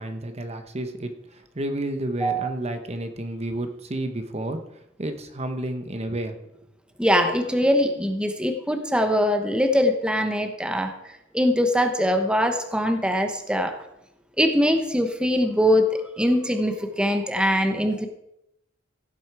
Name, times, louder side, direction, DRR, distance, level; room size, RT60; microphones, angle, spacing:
voice 1, 0.0-4.6 5.0-6.4, right 1 dB, 35° right, 7 dB, 1.0 m, -31 dB
voice 2, 7.0-10.9 11.3-13.7 14.4-18.1, equal, 5° right, 6 dB, 1.0 m, -22 dB
16.0 x 7.8 x 4.8 m, 0.81 s
head